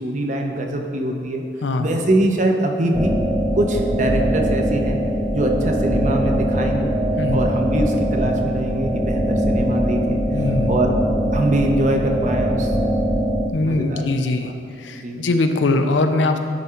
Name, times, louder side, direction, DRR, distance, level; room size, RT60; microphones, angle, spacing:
voice 1, 0.0-1.4 1.8-3.2 3.5-5.0 5.3-6.9 7.3-10.2 10.7-10.9 11.3-12.7 13.6-14.0 14.4-14.5 15.0-15.3, right 1 dB, 40° right, 3 dB, 0.7 m, -23 dB
voice 2, 1.6-2.0 7.2-7.4 10.3-10.7 13.5-14.5 14.8-16.4, left 2 dB, 85° left, 7 dB, 0.6 m, -21 dB
sound 1, 2.9-13.5, equal, 5° right, 0.3 m, -21 dB
10.0 x 3.7 x 4.4 m, 2.6 s
head